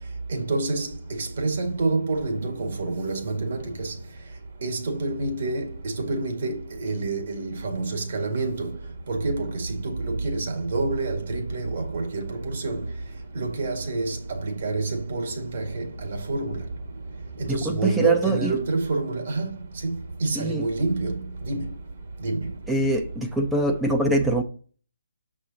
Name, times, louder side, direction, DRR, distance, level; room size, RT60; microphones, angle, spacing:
voice 1, 0.3-3.9 4.6-8.8 9.1-12.9 13.3-16.6 17.4-19.5 19.8-21.7 22.2-22.5, right 3 dB, 55° right, 1.9 m, -28 dB
voice 2, 17.5-18.6 20.4-20.7 22.7-24.4, right 2 dB, 5° right, 0.5 m, -24 dB
6.3 x 5.8 x 2.8 m
hypercardioid pair, 155°, 0 cm